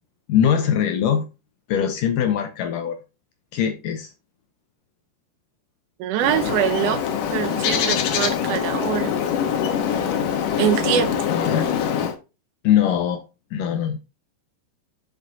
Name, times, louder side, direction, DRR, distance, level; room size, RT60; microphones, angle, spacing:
voice 1, 0.3-1.3 1.7-3.0 3.5-4.1 11.3-11.7 12.6-13.2 13.5-14.0, left 9 dB, 90° left, 1.9 m, -21 dB
voice 2, 6.0-7.0 7.3-9.1 10.6-11.2, right 11 dB, 85° right, 1.8 m, -23 dB
Bird, 6.2-12.1, left 8 dB, 65° left, 2.3 m, -23 dB
12.5 x 5.2 x 2.7 m
omnidirectional pair, 4.8 m